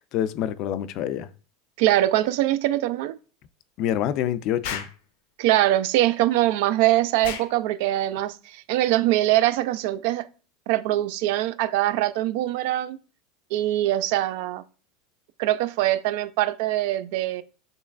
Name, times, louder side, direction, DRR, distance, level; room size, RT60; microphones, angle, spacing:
voice 1, 0.1-1.3 3.8-4.9, left 11 dB, 45° left, 0.3 m, -26 dB
voice 2, 1.8-3.2 5.4-10.2 10.7-13.0 13.5-14.6 15.4-17.4, right 15 dB, 65° right, 0.3 m, -23 dB
Explosion, 4.6-5.0 7.2-7.5, left 7 dB, 90° left, 0.7 m, -32 dB
6.4 x 3.2 x 2.4 m
supercardioid pair, 150°, 0 cm